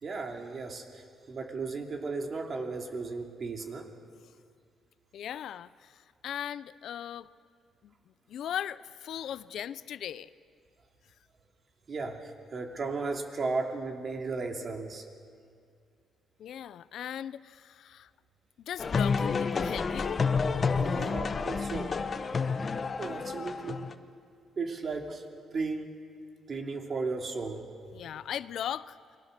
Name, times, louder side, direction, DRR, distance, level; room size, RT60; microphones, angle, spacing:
voice 1, 0.0-3.9 11.9-15.0 20.8-22.0 23.0-23.8 24.6-25.2 25.5-25.9 26.5-27.7, right 4 dB, 40° right, 3 dB, 2.8 m, -35 dB
voice 2, 5.1-7.3 7.8-7.9 8.3-10.3 16.4-18.1 18.7-20.2 27.9-29.0, left 10 dB, 70° left, 16 dB, 0.6 m, -38 dB
sound 1, 18.8-23.9, left 5 dB, 35° left, 1.1 m, -29 dB
29.5 x 22.5 x 6.7 m, 2.2 s
cardioid pair, 130°, 0 cm